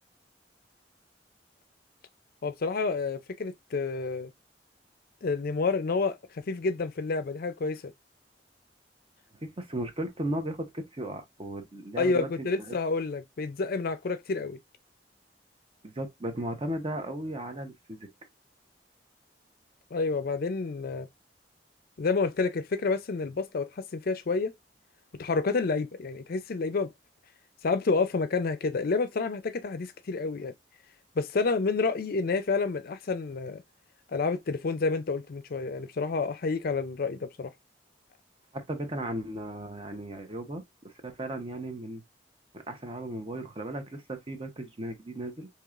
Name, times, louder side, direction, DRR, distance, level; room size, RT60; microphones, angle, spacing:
voice 1, 2.4-4.3 5.2-7.8 12.0-14.6 19.9-21.1 22.0-24.5 25.2-26.9 27.6-30.5 31.2-33.6 34.1-37.5, left 4 dB, 55° left, 0.5 m, -29 dB
voice 2, 9.4-12.7 15.8-18.1 38.5-42.0 42.5-45.5, right 1 dB, 30° right, 0.8 m, -36 dB
4.7 x 2.8 x 2.4 m
head